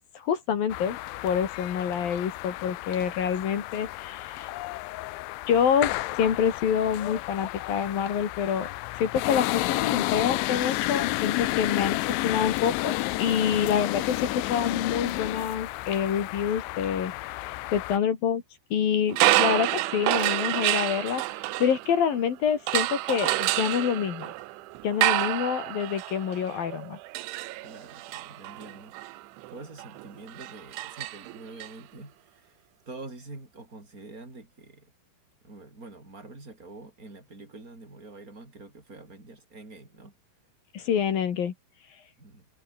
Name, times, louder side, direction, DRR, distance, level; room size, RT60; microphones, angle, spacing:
voice 1, 0.2-1.0 1.2-4.5 5.5-8.7 8.9-12.9 13.2-17.1 17.7-18.4 18.7-21.2 21.6-24.3 24.8-27.0 40.7-41.5, left 8 dB, 55° left, 3.6 m, -27 dB
sound 1, 0.7-18.0, left 19 dB, 80° left, 3.1 m, -31 dB
sound 2, 19.1-22.2 22.7-31.7, right 17 dB, 80° right, 3.4 m, -28 dB
voice 2, 27.6-28.9 29.5-34.9 35.4-40.1 42.2-42.5, right 3 dB, 15° right, 6.8 m, -46 dB
omnidirectional pair, 5.6 m